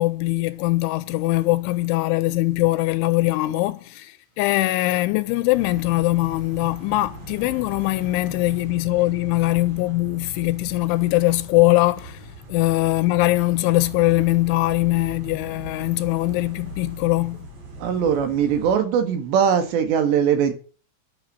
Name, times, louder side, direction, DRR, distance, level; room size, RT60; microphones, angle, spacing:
voice 1, 0.0-17.4, left 19 dB, 80° left, 3.0 m, -21 dB
sound 1, 5.5-18.7, right 1 dB, 35° right, 6.0 m, -39 dB
voice 2, 17.8-20.5, right 8 dB, 70° right, 3.8 m, -20 dB
12.0 x 6.9 x 7.6 m
omnidirectional pair, 5.6 m